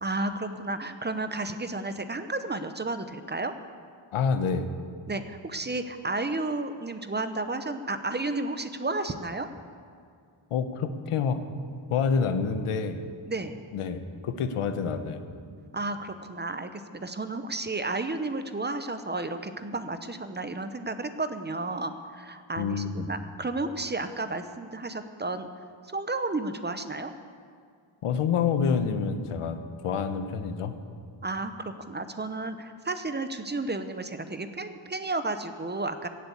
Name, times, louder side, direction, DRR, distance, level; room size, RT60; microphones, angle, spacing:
voice 1, 0.0-3.5 5.1-9.5 13.2-13.5 15.7-25.5 25.9-27.1 31.2-31.5 31.9-36.1, right 2 dB, 20° right, 9 dB, 0.7 m, -32 dB
voice 2, 4.1-4.7 10.5-11.4 11.9-13.0 13.7-15.3 22.6-23.1 28.0-30.7, left 6 dB, 85° left, 9 dB, 1.1 m, -27 dB
15.5 x 7.6 x 8.3 m, 2.2 s
wide cardioid pair, 110°, 50 cm